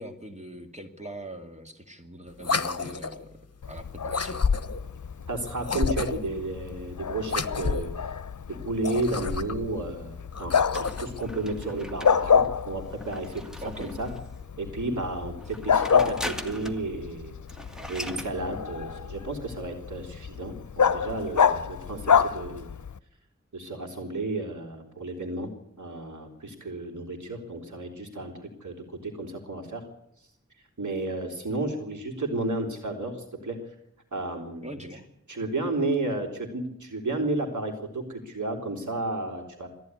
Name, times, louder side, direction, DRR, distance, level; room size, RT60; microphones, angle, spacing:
voice 1, 0.0-3.4 3.7-4.4 13.6-13.9 34.6-35.1, right 1 dB, 25° right, 5 dB, 2.1 m, -41 dB
sound 1, 2.4-3.2 4.1-4.9 5.6-6.4 7.2-8.0 8.7-9.7 10.3-11.2, left 5 dB, 55° left, 1.1 m, -29 dB
Bark, 3.6-23.0, left 7 dB, 80° left, 0.7 m, -29 dB
voice 2, 5.3-8.1 8.5-13.4 13.8-14.1 14.6-17.3 17.9-22.7 23.5-25.5 25.8-29.8 30.8-33.7 34.1-34.7 35.3-39.7, right 2 dB, 80° right, 2 dB, 3.3 m, -32 dB
sound 2, 10.7-14.4 15.4-16.9 17.2-17.3 17.5-18.3, equal, ahead, 1.9 m, -40 dB
19.0 x 14.5 x 9.6 m, 0.81 s
wide cardioid pair, 65°, 29 cm